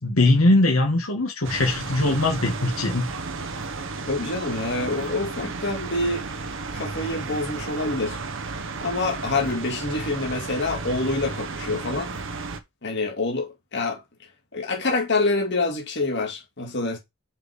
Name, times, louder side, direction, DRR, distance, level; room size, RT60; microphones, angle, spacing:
voice 1, 0.0-3.1, left 2 dB, 85° left, 1.9 m, -21 dB
sound 1, 1.4-12.6, right 3 dB, 65° right, 1.1 m, -33 dB
voice 2, 4.1-6.3 6.7-8.2 8.8-12.2 12.8-14.0 14.5-17.0, left 2 dB, 55° left, 2.4 m, -26 dB
5.8 x 5.0 x 5.1 m
head